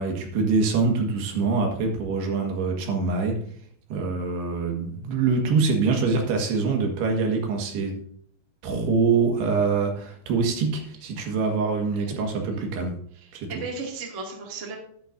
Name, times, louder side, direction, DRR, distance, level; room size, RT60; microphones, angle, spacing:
voice 1, 0.0-3.4 3.9-8.0 8.6-13.0 13.3-13.5, right 4 dB, 70° right, 2 dB, 3.5 m, -24 dB
voice 2, 11.9-12.2 13.1-14.8, right 3 dB, 30° right, 0 dB, 1.2 m, -36 dB
11.5 x 11.5 x 2.6 m, 0.62 s
omnidirectional pair, 5.2 m